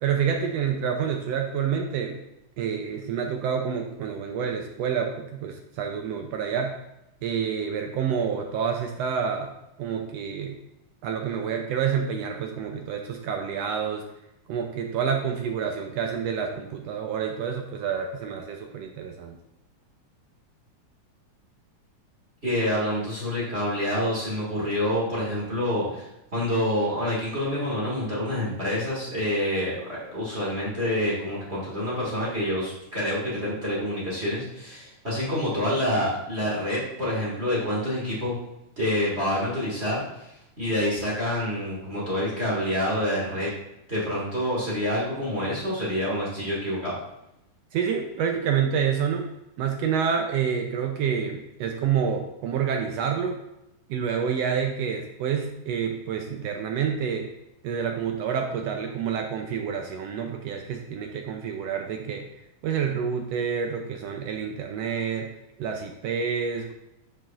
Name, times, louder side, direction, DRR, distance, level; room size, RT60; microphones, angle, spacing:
voice 1, 0.0-2.2 2.6-6.8 7.2-9.5 9.8-10.6 11.0-14.1 14.5-19.4 47.7-49.3 49.6-53.4 53.9-57.3 57.6-62.3 62.6-65.3 65.6-66.7, right 7 dB, 75° right, 3 dB, 1.5 m, -28 dB
voice 2, 22.4-26.0 26.3-38.3 38.8-43.5 43.9-46.9, left 1 dB, 25° right, -6 dB, 1.7 m, -27 dB
10.5 x 4.7 x 2.4 m, 0.87 s
omnidirectional pair, 3.4 m